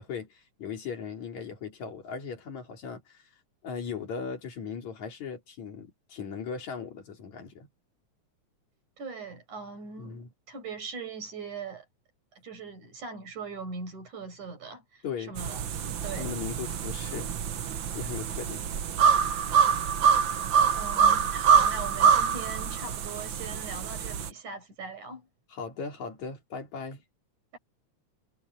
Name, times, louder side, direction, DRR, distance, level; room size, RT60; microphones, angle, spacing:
voice 1, 0.0-3.2 3.6-7.7 10.0-10.3 15.0-15.4 16.2-17.4 17.9-18.7 25.5-27.0, left 6 dB, 70° left, 4.5 m, -38 dB
voice 2, 9.0-11.9 12.3-15.7 16.0-16.3 20.7-25.3 27.5-27.6, right 4 dB, 85° right, 7.7 m, -40 dB
sound 1, 15.4-24.3, right 7 dB, 55° right, 1.4 m, -25 dB
omnidirectional pair, 3.3 m